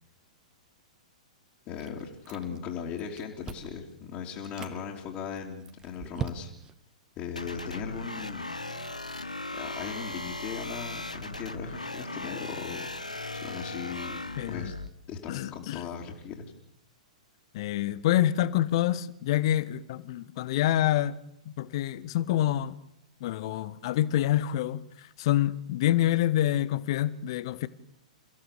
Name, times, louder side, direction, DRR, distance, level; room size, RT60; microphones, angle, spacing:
voice 1, 1.7-6.5 7.2-8.6 9.1-9.2 9.5-12.9 13.3-14.7 15.1-16.5, left 7 dB, 30° left, 3.4 m, -38 dB
Chewing mastication, 1.8-2.7 3.0-3.8 4.3-4.8 5.3-6.8, right 6 dB, 20° right, 1.7 m, -40 dB
sound 1, 7.4-14.9, left 2 dB, 85° left, 1.6 m, -38 dB
voice 2, 14.4-14.7 15.3-15.8 17.5-21.2 21.4-22.8 23.2-27.7, left 13 dB, 45° left, 1.3 m, -27 dB
30.0 x 16.0 x 6.9 m
figure-of-eight pair, 105°, 4 cm